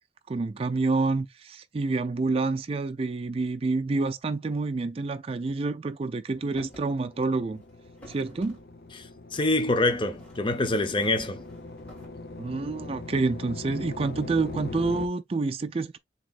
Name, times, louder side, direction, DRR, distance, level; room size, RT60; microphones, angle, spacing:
voice 1, 0.3-7.6 8.1-8.6 12.4-16.0, right 3 dB, 35° right, 0.4 m, -28 dB
sound 1, 6.3-15.1, left 2 dB, 60° left, 0.8 m, -41 dB
sound 2, 6.5-6.9 7.3-8.6 9.3-10.9 11.1-12.1, equal, 10° left, 3.4 m, -52 dB
voice 2, 8.9-11.4, left 2 dB, 30° left, 0.7 m, -26 dB
7.4 x 2.9 x 2.4 m
head